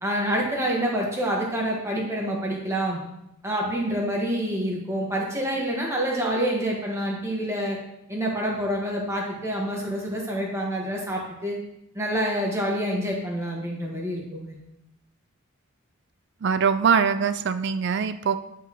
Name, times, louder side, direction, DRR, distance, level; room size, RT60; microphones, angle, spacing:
voice 1, 0.0-3.0 3.4-7.8 8.1-11.6 11.9-14.6, equal, 15° right, -2 dB, 1.6 m, -27 dB
voice 2, 16.4-18.4, right 6 dB, 55° right, 11 dB, 0.4 m, -22 dB
11.0 x 6.1 x 3.1 m, 0.85 s
head